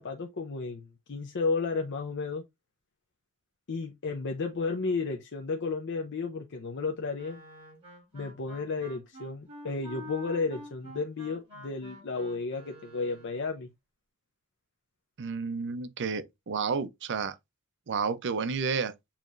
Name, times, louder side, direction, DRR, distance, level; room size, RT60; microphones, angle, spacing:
voice 1, 0.0-2.4 3.7-7.4 8.1-13.7, left 4 dB, 55° left, 0.6 m, -33 dB
Wind instrument woodwind instrument, 7.1-13.5, left 1 dB, 25° right, 3.1 m, -48 dB
voice 2, 15.2-17.4 17.9-18.9, right 5 dB, 55° right, 0.6 m, -31 dB
7.2 x 3.0 x 2.5 m
head